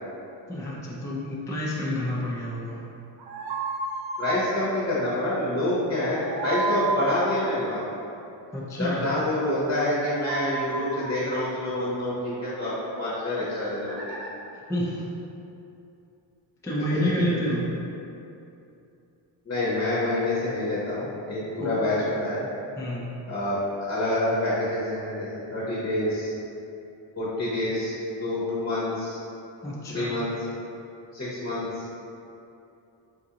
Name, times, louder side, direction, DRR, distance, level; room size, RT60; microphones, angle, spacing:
voice 1, 0.5-2.8 8.5-9.1 14.5-15.0 16.6-17.7 21.6-21.8 22.8-23.0 29.6-30.1, equal, 5° left, -5 dB, 0.4 m, -29 dB
sound 1, 3.2-4.4 6.0-7.4 9.9-11.1 13.9-14.3, right 3 dB, 55° right, 0.7 m, -32 dB
voice 2, 4.2-7.8 8.8-14.2 16.9-17.1 19.5-22.5 23.3-23.6 23.9-26.3 27.2-29.2 29.9-30.3 31.1-31.9, left 1 dB, 30° left, -8 dB, 0.8 m, -27 dB
3.8 x 2.5 x 2.8 m, 2.7 s
cardioid pair, 105°, 47 cm